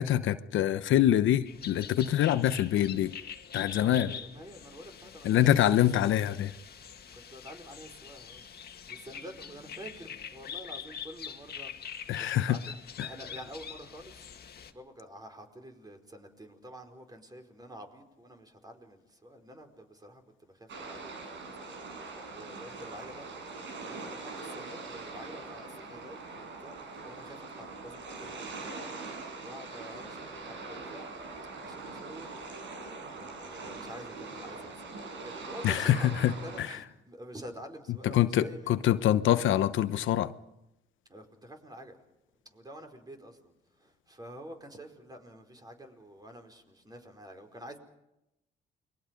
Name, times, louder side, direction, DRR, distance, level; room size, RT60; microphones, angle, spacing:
voice 1, 0.0-3.1 3.5-4.1 5.2-6.5 12.1-12.6 13.0-13.1 35.6-36.7 38.0-40.3, left 11 dB, 75° left, 1.0 m, -25 dB
sound 1, 1.5-14.7, left 7 dB, 55° left, 2.0 m, -44 dB
voice 2, 3.7-6.1 7.1-14.3 14.7-23.3 23.8-28.7 29.4-31.1 31.6-32.3 33.0-34.8 35.2-38.9 41.1-42.0 42.4-47.8, right 1 dB, 20° right, 4.7 m, -48 dB
sound 2, 20.7-36.6, right 3 dB, 70° right, 6.2 m, -42 dB
29.5 x 22.0 x 5.3 m
cardioid pair, 90°, 20 cm